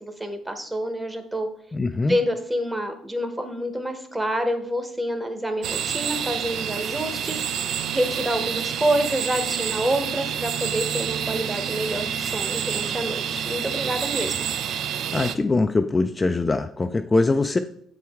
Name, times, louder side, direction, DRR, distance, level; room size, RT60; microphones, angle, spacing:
voice 1, 0.0-1.5 2.1-14.5, equal, 10° right, 8 dB, 0.9 m, -27 dB
voice 2, 1.7-2.1 15.1-17.6, left 3 dB, 25° left, 7 dB, 0.3 m, -22 dB
sound 1, 5.6-15.4, right 8 dB, 70° right, 0.4 m, -28 dB
7.2 x 4.6 x 3.5 m, 0.67 s
cardioid pair, 85°, 0 cm